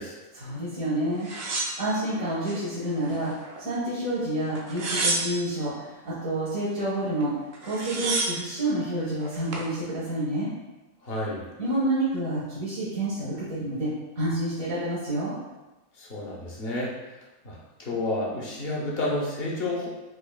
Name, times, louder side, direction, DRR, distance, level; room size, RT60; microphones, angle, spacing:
voice 1, 0.3-7.3 7.6-10.5 11.6-15.4, right 1 dB, 75° right, -9 dB, 1.5 m, -29 dB
sound 1, 1.2-2.6 3.0-3.8 4.6-5.6 7.2-7.3 7.5-8.5 9.2-9.7, right 3 dB, 60° right, 0.7 m, -30 dB
voice 2, 11.0-11.4 16.0-16.9 17.4-19.9, left 2 dB, 50° left, -3 dB, 0.9 m, -30 dB
4.6 x 2.8 x 2.2 m, 1.1 s
omnidirectional pair, 1.4 m